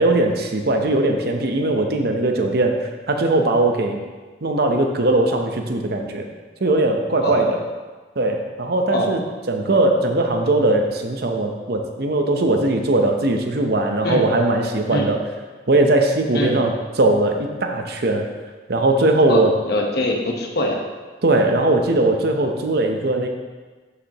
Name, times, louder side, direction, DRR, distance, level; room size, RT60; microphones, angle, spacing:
voice 1, 0.0-4.0 4.4-6.2 6.6-7.6 8.2-9.2 9.5-15.2 15.7-18.3 18.7-19.5 21.2-23.3, right 2 dB, 60° right, 3 dB, 0.8 m, -19 dB
voice 2, 19.3-20.8, left 1 dB, 60° left, 1 dB, 1.1 m, -23 dB
12.0 x 4.9 x 2.9 m, 1.3 s
head